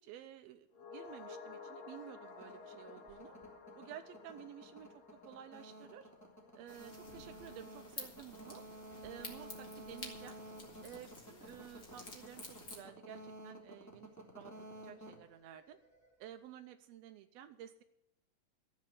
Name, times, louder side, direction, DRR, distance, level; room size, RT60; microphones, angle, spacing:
voice 1, 0.0-3.4 3.8-6.1 6.5-8.6 9.0-10.4 10.8-14.5 14.8-15.8 16.2-17.8, right 10 dB, 85° right, 7 dB, 1.5 m, -52 dB
sound 1, 0.7-9.2 9.5-9.6, left 4 dB, 90° left, 3.6 m, -54 dB
sound 2, 2.3-16.1, right 1 dB, 5° left, 1.8 m, -53 dB
sound 3, 6.7-12.8, left 3 dB, 35° left, 1.9 m, -51 dB
13.5 x 7.3 x 8.5 m, 0.82 s
omnidirectional pair, 3.7 m